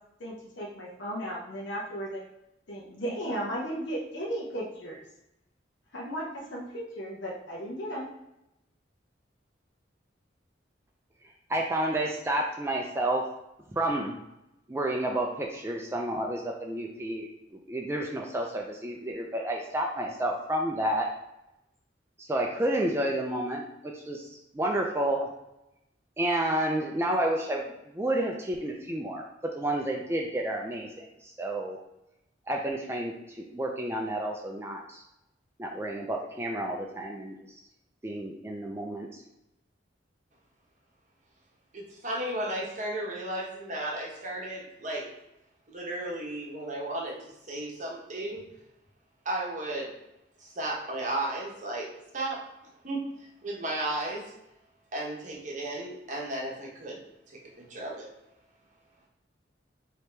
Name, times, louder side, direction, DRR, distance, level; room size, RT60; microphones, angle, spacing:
voice 1, 0.2-2.3 2.7-5.0 5.9-8.1, equal, 75° left, -3 dB, 0.8 m, -35 dB
voice 2, 11.5-13.2 13.7-14.2 14.7-21.1 22.2-23.6 23.9-25.3 26.2-29.2 29.5-31.8 32.5-35.0 35.6-37.4 38.0-39.1, right 1 dB, 15° right, 0 dB, 0.4 m, -30 dB
voice 3, 41.7-45.1 45.7-48.4 49.2-50.0 50.4-52.4 52.8-53.0 53.4-54.3 54.9-57.0 57.3-58.1, right 1 dB, 40° right, -2 dB, 1.0 m, -34 dB
4.6 x 2.9 x 3.3 m, 0.87 s
head